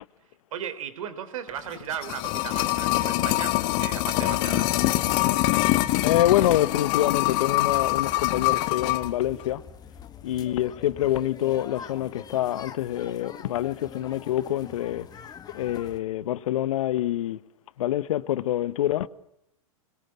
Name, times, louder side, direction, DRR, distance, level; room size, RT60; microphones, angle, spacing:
voice 1, 0.5-4.7, right 8 dB, 65° right, 3.3 m, -36 dB
sound 1, 1.7-9.1 9.4-9.5, left 18 dB, 45° left, 1.6 m, -24 dB
voice 2, 6.0-9.6 10.2-15.1 15.5-17.4 17.8-19.1, left 13 dB, 65° left, 1.1 m, -26 dB
sound 2, 7.7-16.0, left 7 dB, 20° left, 1.9 m, -44 dB
26.5 x 22.0 x 7.3 m
hypercardioid pair, 115°, 18 cm